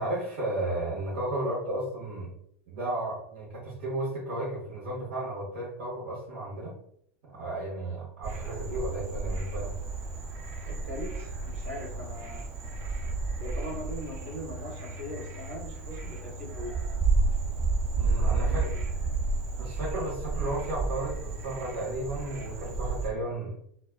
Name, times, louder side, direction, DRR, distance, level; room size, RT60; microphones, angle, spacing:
voice 1, 0.0-2.3 2.7-6.7 7.2-9.7 17.9-18.7 19.6-23.8, right 1 dB, 60° right, -5 dB, 1.1 m, -33 dB
Frog, 8.2-23.1, right 3 dB, 40° right, 0.8 m, -31 dB
voice 2, 10.6-12.4 13.4-16.7 18.3-18.9, equal, 85° right, -4 dB, 1.2 m, -40 dB
2.4 x 2.3 x 2.4 m, 0.69 s
hypercardioid pair, 90°, 7 cm